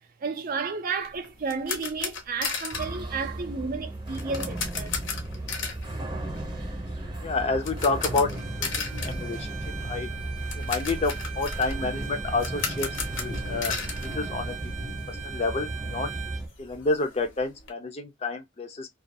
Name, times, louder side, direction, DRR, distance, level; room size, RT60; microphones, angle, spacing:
voice 1, 0.0-4.9, right 4 dB, 45° right, 0.4 m, -32 dB
sound 1, 1.0-15.0 15.2-15.4 15.8-15.9 16.1-17.7, left 5 dB, 70° left, 0.8 m, -36 dB
sound 2, 2.7-16.5, right 1 dB, 25° right, 0.7 m, -35 dB
voice 2, 7.2-9.5 9.8-10.1 10.5-14.6 14.8-16.1 16.6-18.9, left 3 dB, 30° left, 0.4 m, -29 dB
Bowed string instrument, 8.3-16.5, right 10 dB, 85° right, 0.6 m, -41 dB
2.3 x 2.3 x 2.5 m
head